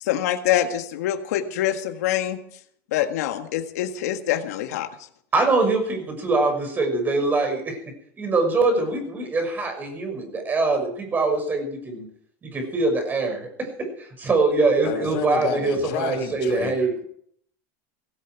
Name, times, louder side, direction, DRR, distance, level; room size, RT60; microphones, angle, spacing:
voice 1, 0.0-2.4 2.9-4.9, left 11 dB, 85° left, 6 dB, 1.7 m, -25 dB
voice 2, 5.3-7.8 8.2-12.1 12.4-16.9, right 3 dB, 20° right, 4 dB, 6.2 m, -23 dB
voice 3, 14.8-16.8, left 8 dB, 60° left, 3 dB, 6.1 m, -30 dB
18.0 x 16.0 x 4.7 m, 0.65 s
supercardioid pair, 140°, 8 cm